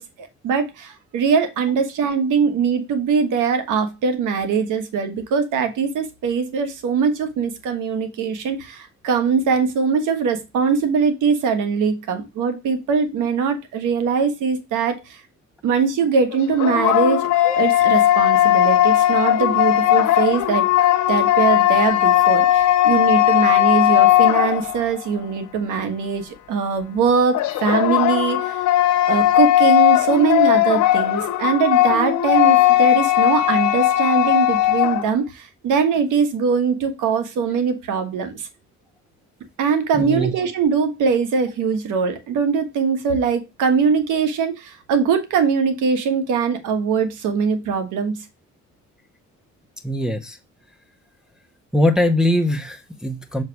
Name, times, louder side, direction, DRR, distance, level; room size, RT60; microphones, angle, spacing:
voice 1, 0.0-15.2 15.6-17.3 17.6-20.7 21.1-28.6 29.1-38.5 39.6-48.1, right 5 dB, 85° right, 1.4 m, -21 dB
sound 1, 16.3-25.0 27.3-35.1, left 14 dB, 75° left, 0.9 m, -17 dB
voice 2, 39.9-40.3 49.8-50.4 51.7-53.4, left 1 dB, ahead, 0.8 m, -21 dB
6.5 x 3.3 x 4.6 m
cardioid pair, 90°, 30 cm